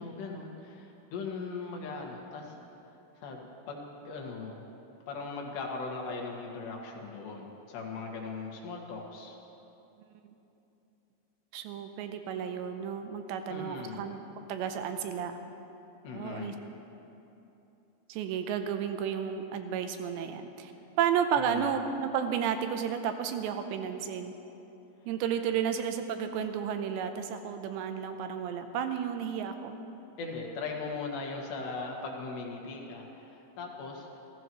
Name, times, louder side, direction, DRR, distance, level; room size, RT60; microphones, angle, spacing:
voice 1, 0.0-2.6 3.2-4.6 5.1-9.4 13.5-14.0 16.0-16.6 21.4-21.7 30.2-34.2, left 4 dB, 70° left, 0 dB, 3.8 m, -39 dB
voice 2, 11.5-14.2 14.5-15.4 16.1-16.5 18.1-20.7 21.0-24.3 25.1-29.8, right 8 dB, 80° right, 7 dB, 2.9 m, -32 dB
28.0 x 15.0 x 3.1 m, 3.0 s
omnidirectional pair, 5.3 m